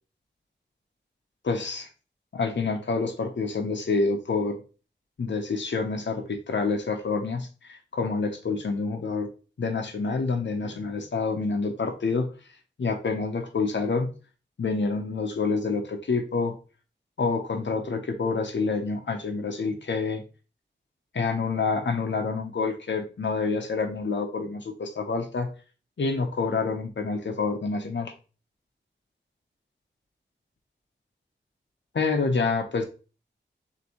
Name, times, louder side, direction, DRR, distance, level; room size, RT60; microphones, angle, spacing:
voice 1, 1.4-1.9 2.3-4.6 5.2-9.3 9.6-12.3 12.8-14.1 14.6-16.5 17.2-20.2 21.1-25.5 26.0-28.1 31.9-32.8, left 4 dB, 70° left, 5 dB, 0.7 m, -27 dB
6.7 x 2.7 x 2.9 m, 0.35 s
wide cardioid pair, 45°, 19 cm